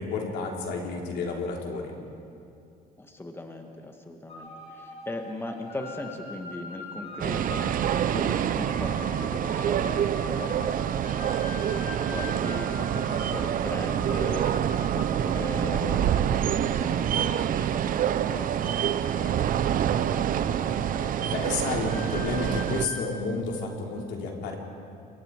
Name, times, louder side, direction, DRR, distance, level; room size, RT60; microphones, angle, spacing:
voice 1, 0.0-1.9 12.8-13.1 21.3-24.6, left 4 dB, 85° left, 0 dB, 3.8 m, -31 dB
voice 2, 3.0-7.8 8.1-12.8 13.1-20.5, left 2 dB, 15° left, 4 dB, 1.9 m, -39 dB
sound 1, 4.3-23.0, left 3 dB, 40° left, 6.3 m, -43 dB
sound 2, 7.2-22.9, right 10 dB, 55° right, 0.8 m, -26 dB
27.5 x 23.5 x 4.9 m, 2.5 s
cardioid pair, 110°, 17 cm